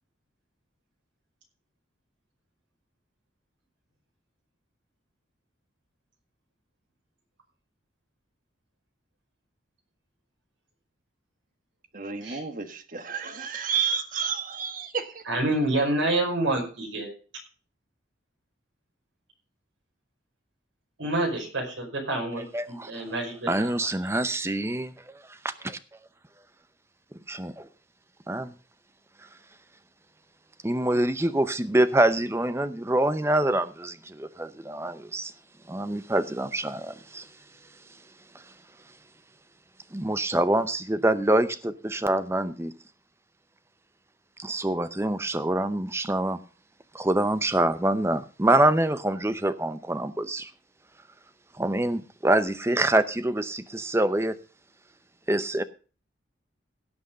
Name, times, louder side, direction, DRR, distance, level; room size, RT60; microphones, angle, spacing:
voice 1, 11.9-15.2, right 6 dB, 45° right, 8 dB, 1.3 m, -31 dB
voice 2, 15.3-17.1 21.0-23.7, right 2 dB, 85° right, 1 dB, 5.0 m, -28 dB
voice 3, 22.5-23.0 23.5-24.8 25.6-25.8 27.3-27.7 28.3-28.5 30.6-35.3 35.7-37.3 38.3-38.4 39.9-42.7 44.4-46.4 46.9-50.5 51.5-54.4 55.3-55.6, right 1 dB, 15° right, 12 dB, 0.6 m, -25 dB
17.0 x 6.2 x 5.2 m, 0.37 s
head